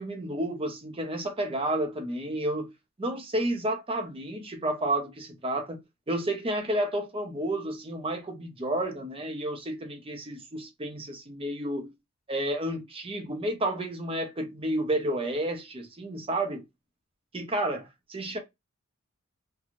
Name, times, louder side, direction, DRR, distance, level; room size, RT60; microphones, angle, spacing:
voice 1, 0.0-2.7 3.0-5.8 6.1-11.9 12.3-16.6 17.3-18.4, right 1 dB, 25° right, 0.6 m, -31 dB
2.5 x 2.3 x 2.9 m
head